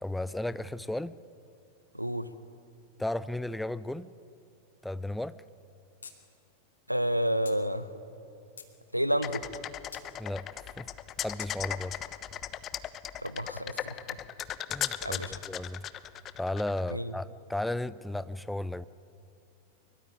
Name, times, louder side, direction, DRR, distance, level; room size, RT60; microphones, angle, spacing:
voice 1, 0.0-1.2 3.0-4.1 4.8-5.4 10.2-10.9 11.2-12.0 14.7-15.8 16.4-18.8, left 1 dB, 5° left, 16 dB, 0.6 m, -34 dB
voice 2, 1.9-2.3 6.9-7.9 8.9-9.4 13.2-14.2 15.0-15.3 16.9-17.1, equal, 90° right, 14 dB, 1.1 m, -30 dB
sound 1, 6.0-6.2 6.5-6.6 7.4-7.6 8.2-8.7 9.9-10.1 11.4-11.5, left 6 dB, 70° left, 2.5 m, -47 dB
sound 2, 9.2-16.9, left 11 dB, 30° left, 1.0 m, -37 dB
24.5 x 22.5 x 9.8 m, 2.7 s
figure-of-eight pair, 90°, 0 cm